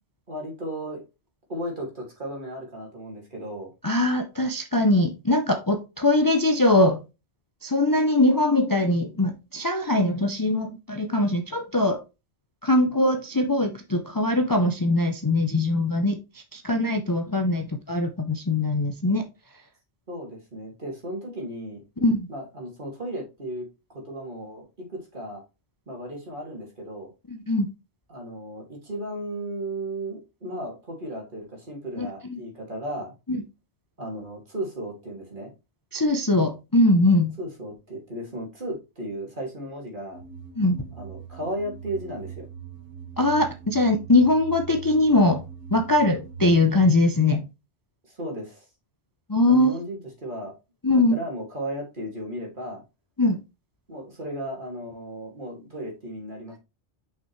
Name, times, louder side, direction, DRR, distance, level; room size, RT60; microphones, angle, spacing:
voice 1, 0.3-1.0 1.5-3.7 20.1-21.8 22.3-25.4 25.9-27.1 28.1-33.1 34.0-35.5 37.4-40.2 40.9-42.5 48.1-48.7 49.5-50.5 50.9-52.8 53.9-56.6, right 1 dB, 45° right, 0 dB, 2.6 m, -35 dB
voice 2, 3.8-7.0 7.6-12.0 12.6-19.2 22.0-22.3 27.3-27.7 32.0-32.4 33.3-33.4 35.9-37.3 40.6-40.8 43.2-45.4 45.7-47.4 49.3-49.7 50.8-51.1 53.2-53.4, left 2 dB, 20° left, 5 dB, 0.6 m, -22 dB
sound 1, 40.1-46.9, right 8 dB, 85° right, 1.8 m, -41 dB
6.1 x 5.8 x 3.1 m, 0.27 s
omnidirectional pair, 1.2 m